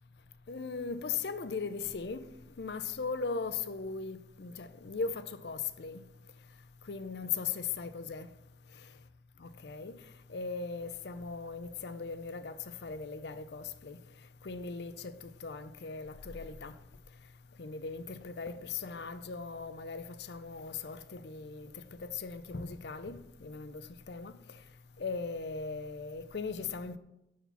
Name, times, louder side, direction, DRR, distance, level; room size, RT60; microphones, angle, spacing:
voice 1, 0.5-2.3 2.6-6.0 6.9-8.3 9.4-10.0 10.3-14.0 14.4-16.8 17.6-24.6 25.0-27.0, left 5 dB, 65° left, 0.6 m, -39 dB
10.0 x 4.3 x 7.0 m
head